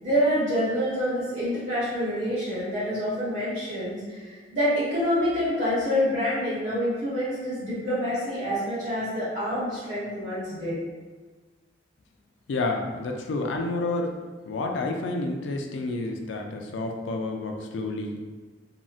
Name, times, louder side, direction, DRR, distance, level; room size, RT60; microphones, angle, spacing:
voice 1, 0.0-10.8, equal, 40° right, -10 dB, 0.9 m, -27 dB
voice 2, 12.5-14.1 14.5-18.2, left 2 dB, 90° left, 2 dB, 0.4 m, -29 dB
3.7 x 2.1 x 2.4 m, 1.4 s
head